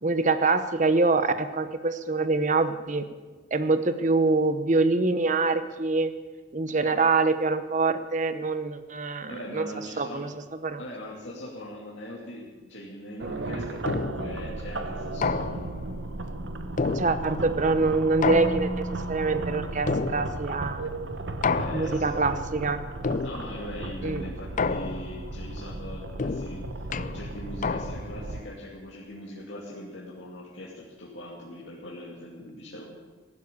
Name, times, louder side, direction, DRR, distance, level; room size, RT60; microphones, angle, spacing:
voice 1, 0.0-3.0 3.5-6.1 6.5-9.7 10.0-10.3 10.6-10.8 13.2-13.3 16.9-20.8 21.7-22.8 24.0-24.2, right 3 dB, 40° right, 11 dB, 0.9 m, -25 dB
voice 2, 9.3-10.3 10.8-15.7 21.5-22.2 23.2-32.8, left 1 dB, 65° left, -6 dB, 2.7 m, -40 dB
sound 1, 13.2-28.4, right 2 dB, 70° right, 1.0 m, -35 dB
sound 2, 13.9-14.4 15.2-15.9 16.8-17.5 18.2-19.0 19.9-20.6 21.4-22.2 23.0-23.7 24.6-25.3 26.2-28.2, left 4 dB, 40° left, 0.4 m, -30 dB
15.0 x 11.5 x 7.0 m, 1.3 s
head